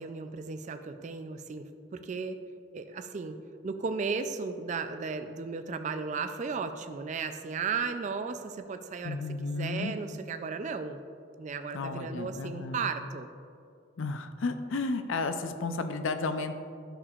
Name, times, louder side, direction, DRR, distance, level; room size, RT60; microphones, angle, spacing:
voice 1, 0.0-2.4 2.7-3.4 3.6-9.2 9.4-11.0 11.4-13.3, right 5 dB, 35° right, 8 dB, 0.3 m, -35 dB
voice 2, 9.0-9.9 11.7-12.9 14.0-16.6, left 3 dB, 65° left, 8 dB, 0.5 m, -33 dB
11.0 x 6.8 x 2.4 m, 2.4 s
head